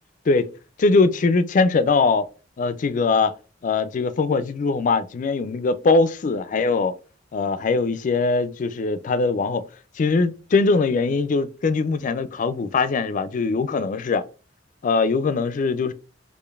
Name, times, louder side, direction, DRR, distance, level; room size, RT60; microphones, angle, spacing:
voice 1, 0.8-2.3 2.6-3.3 3.6-6.9 7.3-9.7 10.0-14.3 14.8-15.9, left 4 dB, 40° left, 0.3 m, -21 dB
4.9 x 2.5 x 2.4 m
head